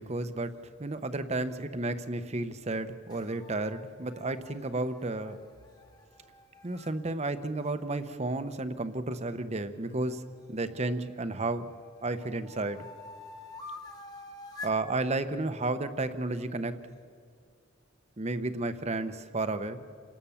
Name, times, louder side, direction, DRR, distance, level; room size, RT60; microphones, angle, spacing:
voice 1, 0.0-5.4 6.6-10.2 10.5-11.7 12.0-12.9 14.6-17.0 18.2-19.9, right 2 dB, 35° right, 10 dB, 0.9 m, -32 dB
sound 1, 3.1-6.9 9.9-11.1 11.6-14.8, left 3 dB, 20° left, 1.4 m, -48 dB
28.5 x 18.0 x 7.2 m, 2.3 s
head